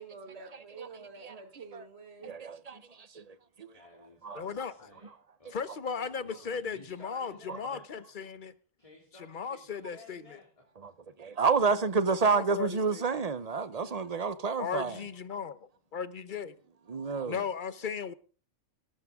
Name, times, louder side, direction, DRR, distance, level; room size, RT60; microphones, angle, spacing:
voice 1, 0.0-2.4, right 4 dB, 55° right, 1.7 m, -47 dB
voice 2, 0.5-0.9 1.2-1.3 1.7-1.9 2.2-3.7 4.2-4.4 7.5-7.6 10.8-10.9 11.2-15.0 16.9-17.4, right 4 dB, 35° right, 0.8 m, -30 dB
voice 3, 3.7-5.1 5.4-5.7 5.9-8.1 8.8-10.6 17.2-17.5, left 2 dB, 25° left, 2.8 m, -55 dB
voice 4, 4.3-4.9 5.5-8.5 9.3-10.2 12.2-13.0 14.6-15.6 15.9-16.5 17.3-18.1, left 6 dB, 45° left, 0.9 m, -36 dB
18.0 x 13.0 x 3.7 m
omnidirectional pair, 1.4 m